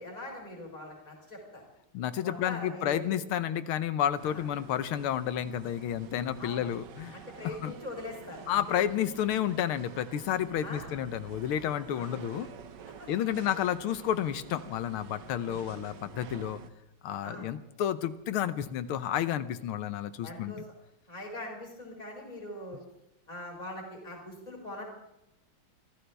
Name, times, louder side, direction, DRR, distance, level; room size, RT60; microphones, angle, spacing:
voice 1, 0.0-1.6 2.2-3.2 4.2-4.4 6.4-6.7 7.1-8.6 10.6-11.0 11.9-12.2 13.0-13.1 13.4-13.5 15.6-15.9 17.2-17.5 20.2-20.6 21.1-22.8 23.3-24.8, left 1 dB, 20° left, -1 dB, 4.1 m, -42 dB
voice 2, 1.9-7.2 7.4-7.7 8.5-12.5 13.1-16.6 17.0-20.5, left 10 dB, 80° left, 13 dB, 1.8 m, -31 dB
sound 1, 4.2-16.7, right 8 dB, 65° right, 1.4 m, -49 dB
26.5 x 15.5 x 3.5 m, 0.89 s
omnidirectional pair, 2.4 m